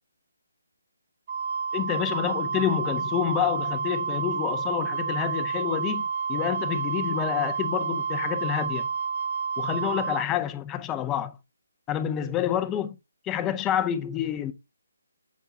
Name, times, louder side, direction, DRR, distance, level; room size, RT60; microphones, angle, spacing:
Wind instrument woodwind instrument, 1.3-10.2, right 6 dB, 40° right, 0.5 m, -29 dB
voice 1, 1.7-8.9 9.6-11.4 11.9-13.0 13.2-14.5, left 10 dB, 15° left, 0.5 m, -28 dB
8.3 x 5.5 x 3.5 m
figure-of-eight pair, 145°, 0 cm